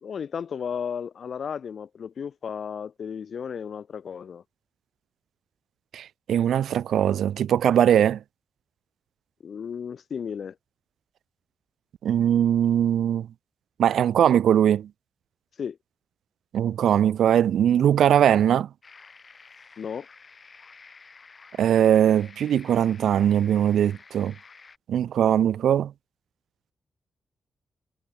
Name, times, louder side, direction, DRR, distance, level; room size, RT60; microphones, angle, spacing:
voice 1, 0.0-4.4 9.4-10.5 15.6-15.8 19.8-20.1, left 7 dB, 50° left, 0.6 m, -34 dB
voice 2, 5.9-8.2 12.0-13.3 13.8-14.9 16.5-18.7 21.6-24.3 24.9-25.9, right 10 dB, 85° right, 0.4 m, -21 dB
sound 1, 18.8-24.8, left 4 dB, 30° left, 4.1 m, -51 dB
wide cardioid pair, 160°, 0 cm